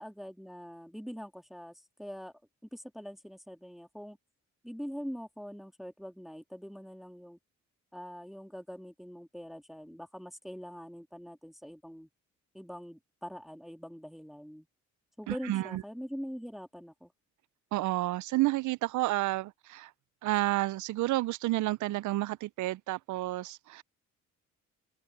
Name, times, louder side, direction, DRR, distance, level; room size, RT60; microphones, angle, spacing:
voice 1, 0.0-2.3 2.7-4.2 4.6-7.4 7.9-12.1 12.5-14.7 15.2-17.1, equal, ahead, 1.7 m, -43 dB
voice 2, 15.3-15.8 17.7-19.9 20.2-23.8, right 17 dB, 75° right, 0.5 m, -30 dB
open air
cardioid pair, 90°, 30 cm